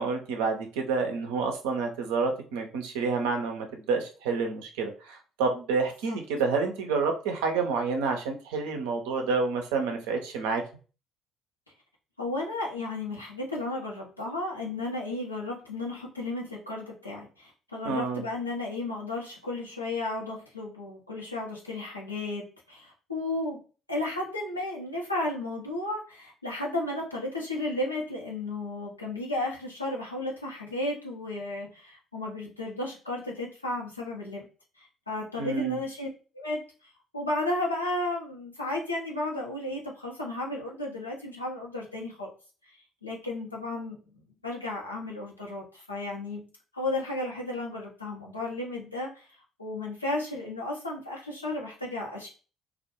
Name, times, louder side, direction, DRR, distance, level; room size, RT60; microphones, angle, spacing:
voice 1, 0.0-10.6 17.8-18.2 35.4-35.8, right 4 dB, 70° right, 3 dB, 0.4 m, -29 dB
voice 2, 12.2-23.6 23.9-34.4 34.8-36.1 36.3-42.3 43.0-46.5 46.7-52.3, left 2 dB, 90° left, -3 dB, 0.5 m, -34 dB
2.2 x 2.0 x 2.8 m, 0.36 s
figure-of-eight pair, 50°, 0 cm